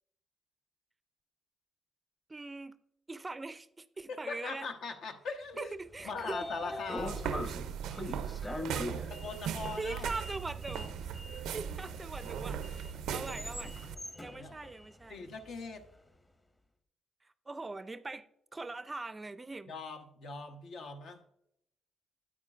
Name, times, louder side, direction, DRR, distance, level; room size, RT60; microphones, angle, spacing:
voice 1, 2.3-2.7 3.1-4.7 5.6-6.4 9.8-11.1 11.5-13.8 14.2-15.2 17.2-18.3 18.5-19.7, right 3 dB, 20° right, 0.4 m, -42 dB
voice 2, 4.1-5.7 6.0-7.2 9.1-10.1 14.3-14.5 15.1-15.9 19.7-21.2, left 4 dB, 70° left, 0.9 m, -41 dB
Sliding door, 5.7-15.9, left 1 dB, 20° left, 0.9 m, -43 dB
sound 1, 7.0-13.9, right 8 dB, 85° right, 0.4 m, -38 dB
8.9 x 8.8 x 2.4 m
cardioid pair, 90°, 0 cm